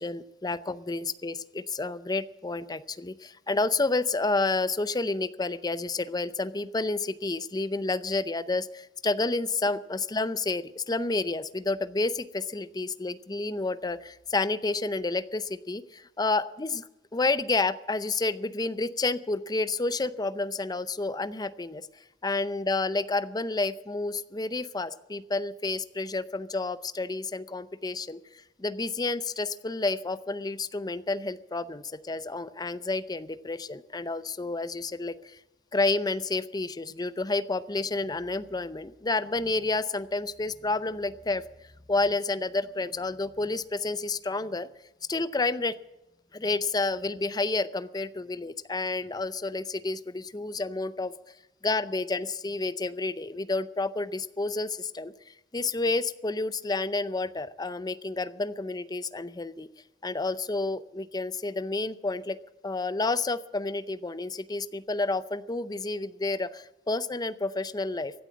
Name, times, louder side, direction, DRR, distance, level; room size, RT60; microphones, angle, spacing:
voice 1, 0.0-21.9 22.2-28.2 28.6-35.4 35.7-41.4 41.9-44.7 45.1-45.7 46.3-51.1 51.6-59.7 60.0-62.4 62.6-68.1, left 3 dB, 20° left, 14 dB, 0.6 m, -30 dB
16.0 x 9.1 x 8.5 m, 0.97 s
head